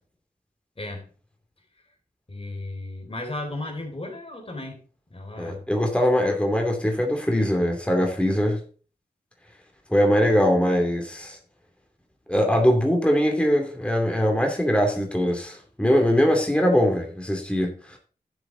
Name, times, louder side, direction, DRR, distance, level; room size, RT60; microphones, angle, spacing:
voice 1, 0.8-1.1 2.3-4.8 5.1-5.6, left 2 dB, 35° left, 3.5 m, -35 dB
voice 2, 5.4-8.6 9.9-11.4 12.3-18.0, equal, 5° left, 2.6 m, -22 dB
12.0 x 7.1 x 3.8 m
wide cardioid pair, 75°, 16 cm